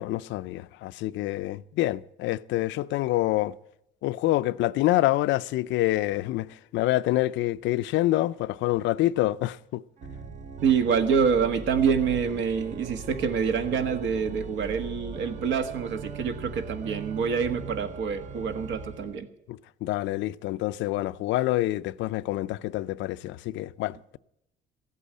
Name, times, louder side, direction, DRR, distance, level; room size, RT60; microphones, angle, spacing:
voice 1, 0.0-3.5 4.0-9.8 19.5-24.2, left 16 dB, 80° left, 0.5 m, -27 dB
Organ, 10.0-19.2, right 5 dB, 40° right, 0.8 m, -40 dB
voice 2, 10.6-19.3, right 6 dB, 75° right, 1.6 m, -26 dB
15.0 x 8.3 x 8.6 m
cardioid pair, 165°, 19 cm